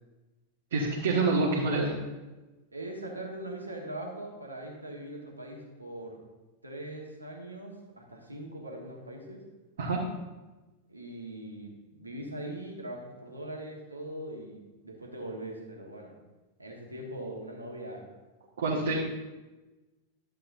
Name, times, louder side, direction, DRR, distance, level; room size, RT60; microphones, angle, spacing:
voice 1, 0.7-1.9 9.8-10.0 18.6-19.0, right 3 dB, 60° right, -4 dB, 1.4 m, -27 dB
voice 2, 2.7-6.2 6.6-9.4 10.9-16.1 16.6-18.1 18.7-19.0, right 1 dB, 80° right, -1 dB, 1.5 m, -41 dB
11.5 x 7.4 x 2.7 m, 1.1 s
figure-of-eight pair, 90°, 0 cm